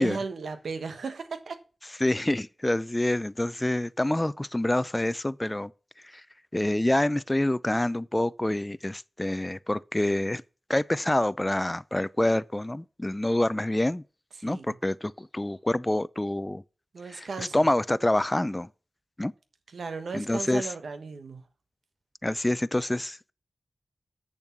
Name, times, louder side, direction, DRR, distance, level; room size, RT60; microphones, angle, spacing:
voice 1, 0.0-1.6 14.4-14.7 16.9-17.7 19.7-21.4, right 4 dB, 80° right, 1.3 m, -36 dB
voice 2, 2.0-5.7 6.1-6.2 6.5-10.4 10.7-14.0 14.4-16.6 17.1-18.7 19.2-19.3 20.1-20.7 22.2-23.3, left 1 dB, 20° left, 0.5 m, -27 dB
8.3 x 7.0 x 5.9 m
cardioid pair, 45°, 0 cm